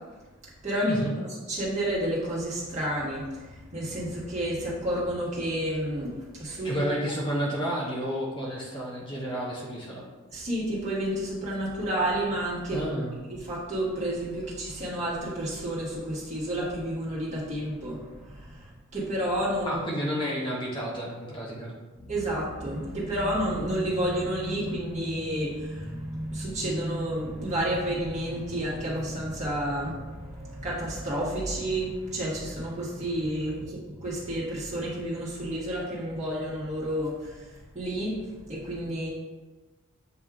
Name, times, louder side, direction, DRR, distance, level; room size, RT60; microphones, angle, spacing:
voice 1, 0.6-1.0 1.5-6.8 10.3-12.8 13.3-19.8 22.0-38.2 38.5-39.1, right 1 dB, 35° right, -7 dB, 1.4 m, -30 dB
voice 2, 6.6-10.0 12.7-13.2 19.6-21.7, equal, 25° left, -4 dB, 0.7 m, -31 dB
7.9 x 2.7 x 2.4 m, 1.3 s
head